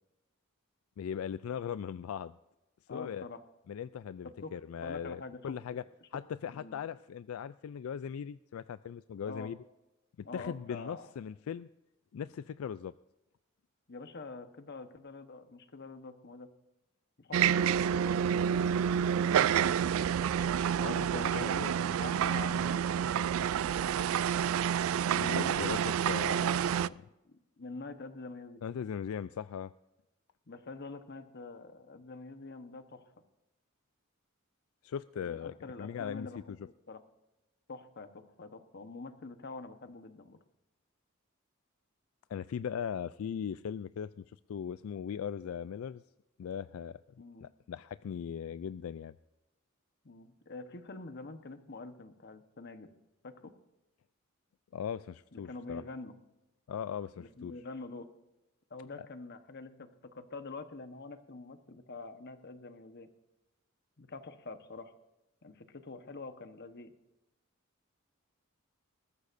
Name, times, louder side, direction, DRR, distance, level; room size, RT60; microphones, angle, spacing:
voice 1, 1.0-2.4 2.9-3.2 3.7-5.8 6.1-9.6 10.2-11.7 12.1-12.9 20.8-21.4 25.1-27.0 28.6-29.7 34.8-36.6 42.3-46.0 46.4-47.0 47.4-49.2 54.7-55.8 56.7-57.5 59.0-59.1, left 8 dB, 85° left, 15 dB, 0.3 m, -39 dB
voice 2, 2.9-3.4 4.4-4.5 4.8-5.8 6.5-6.8 9.2-9.5 10.2-11.1 13.9-16.5 17.2-19.8 21.1-24.5 25.1-26.9 27.2-28.6 30.5-33.0 35.2-36.6 36.9-37.0 37.7-40.4 47.2-47.4 50.0-52.9 53.2-53.5 55.3-56.1 57.2-58.1 58.7-63.1 64.0-64.9 65.4-66.9, left 3 dB, 55° left, 9 dB, 1.1 m, -46 dB
sound 1, 17.3-26.9, right 8 dB, 75° right, 0.3 m, -29 dB
20.0 x 14.5 x 2.6 m, 0.96 s
head